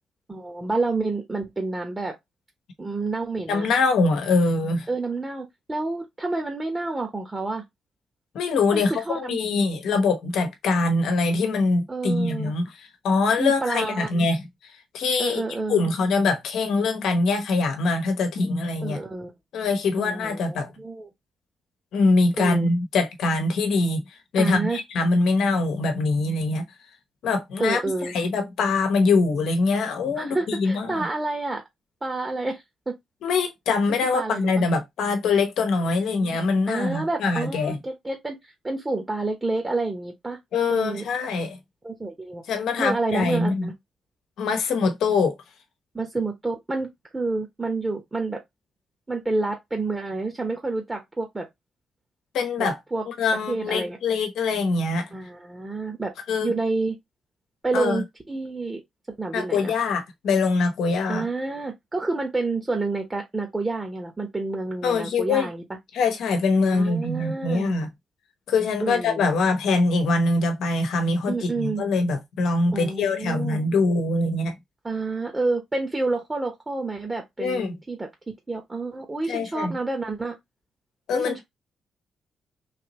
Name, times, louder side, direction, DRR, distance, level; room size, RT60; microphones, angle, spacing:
voice 1, 0.3-2.1 2.8-3.7 4.9-7.6 8.7-9.4 11.9-12.5 13.4-14.3 15.2-15.9 18.8-19.3 20.0-21.1 22.4-22.7 24.4-24.8 27.6-28.2 30.2-31.6 32.0-32.9 34.1-34.6 35.8-36.4 36.7-38.4 38.6-40.4 40.7-41.0 41.8-42.4 42.8-43.7 45.9-46.9 47.1-48.4 49.1-51.5 52.6-53.0 53.5-54.0 55.1-56.1 56.4-57.0 57.6-58.8 59.2-59.7 61.1-65.6 66.6-67.7 68.8-69.3 71.3-71.8 72.7-73.6 74.8-78.1 78.5-80.3 81.1-81.4, right 3 dB, 25° right, 1.1 m, -29 dB
voice 2, 3.5-4.9 8.3-14.4 14.9-15.4 15.7-19.0 19.5-20.7 21.9-24.0 24.3-26.6 27.2-31.1 33.2-37.8 40.5-41.6 42.5-43.7 44.4-45.4 52.3-52.8 53.1-55.1 56.3-56.5 57.7-58.0 59.3-61.2 64.8-65.5 65.9-67.9 68.5-74.6 77.4-77.8 79.3-79.8 81.1-81.4, left 3 dB, 75° left, 1.0 m, -23 dB
3.4 x 2.8 x 3.0 m
supercardioid pair, 50°, 0 cm